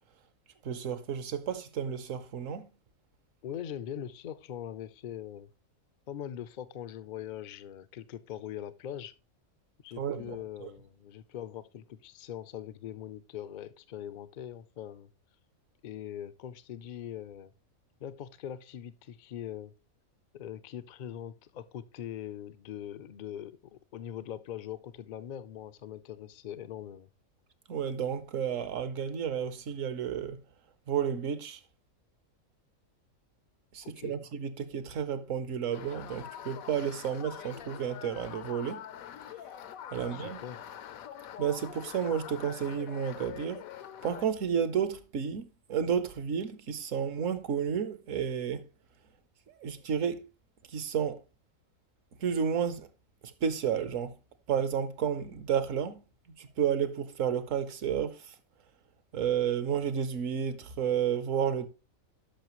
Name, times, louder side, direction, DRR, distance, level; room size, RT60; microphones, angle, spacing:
voice 1, 0.6-2.7 10.0-10.7 27.7-30.4 30.9-31.6 33.7-38.8 39.9-40.4 41.4-43.6 44.0-48.6 49.5-50.2 50.7-51.2 52.2-52.9 53.2-54.1 54.5-56.0 56.4-58.3 59.1-61.7, right 8 dB, 65° right, 1.2 m, -31 dB
voice 2, 3.4-5.5 6.1-9.1 9.8-15.1 15.8-17.5 18.0-19.7 20.3-27.1 33.8-34.2 39.9-40.7, left 10 dB, 60° left, 0.4 m, -42 dB
sound 1, 35.7-44.3, left 10 dB, 80° left, 1.1 m, -45 dB
11.5 x 5.6 x 3.0 m
omnidirectional pair, 1.5 m